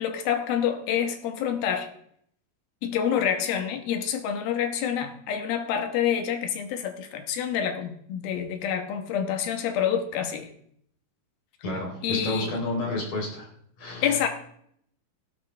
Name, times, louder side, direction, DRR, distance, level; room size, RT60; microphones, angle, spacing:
voice 1, 0.0-1.9 2.8-10.5 11.7-12.6 14.0-14.3, left 8 dB, 75° left, 6 dB, 3.0 m, -27 dB
voice 2, 11.6-13.5 13.8-14.1, left 2 dB, 55° left, -2 dB, 5.0 m, -30 dB
16.0 x 12.5 x 3.3 m, 0.67 s
omnidirectional pair, 4.4 m